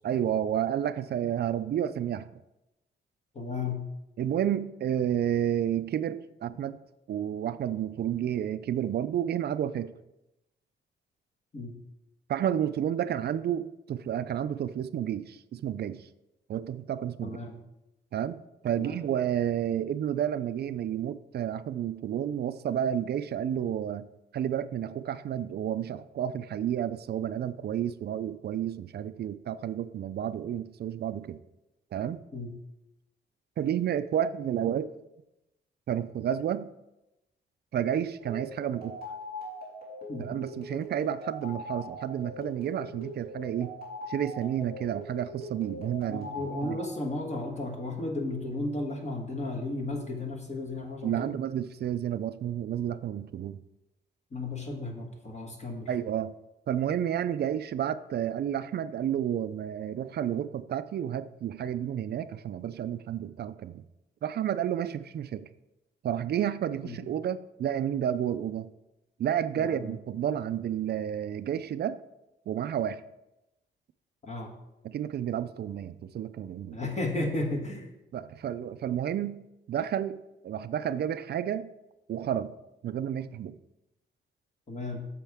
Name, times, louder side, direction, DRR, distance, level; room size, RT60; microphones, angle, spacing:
voice 1, 0.0-2.4 4.2-6.8 7.1-9.9 12.3-16.1 16.5-17.4 18.1-24.1 24.3-31.4 31.9-32.2 33.6-34.9 35.9-36.7 37.7-39.0 40.2-43.7 44.1-46.3 46.6-46.8 51.0-53.6 55.9-56.3 56.7-63.8 64.2-65.5 66.0-68.7 69.2-72.0 72.5-73.0 74.8-76.8 78.1-81.7 82.1-82.5 82.8-83.6, right 10 dB, 55° right, 14 dB, 0.4 m, -31 dB
voice 2, 3.3-3.8 11.5-11.7 17.2-17.6 18.8-19.0 32.3-32.5 40.1-40.4 46.1-51.3 54.3-55.9 66.8-67.0 69.6-70.0 74.2-74.5 76.7-77.9 84.7-85.0, left 2 dB, 35° left, 1 dB, 1.4 m, -34 dB
sound 1, 38.2-46.9, left 1 dB, 50° left, 3.5 m, -41 dB
10.0 x 7.0 x 3.5 m, 0.93 s
cardioid pair, 125°, 20 cm